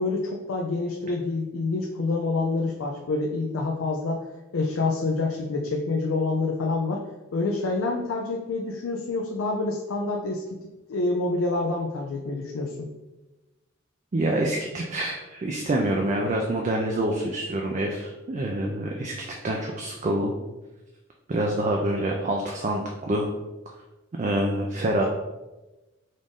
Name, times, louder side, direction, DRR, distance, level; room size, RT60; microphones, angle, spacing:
voice 1, 0.0-4.2 4.5-7.0 7.3-10.4 10.9-12.9, left 3 dB, 75° left, 0 dB, 0.5 m, -27 dB
voice 2, 14.1-19.1 19.4-20.4 21.3-23.3 24.2-25.1, right 1 dB, 35° right, 0 dB, 0.4 m, -26 dB
5.1 x 2.6 x 3.5 m, 1.1 s
head